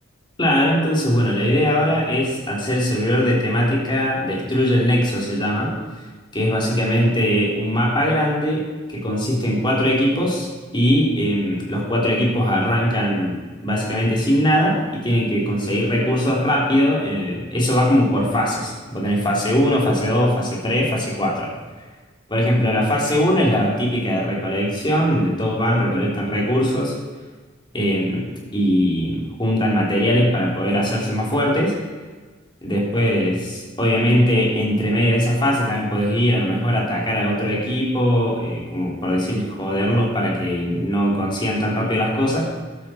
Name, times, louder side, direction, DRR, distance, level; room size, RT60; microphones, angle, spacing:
voice 1, 0.4-5.7 6.3-8.6 8.9-10.5 10.7-21.5 22.3-26.9 27.7-28.2 28.5-31.8 32.6-42.5, equal, 25° left, -3 dB, 3.4 m, -20 dB
14.0 x 11.5 x 4.4 m, 1.4 s
head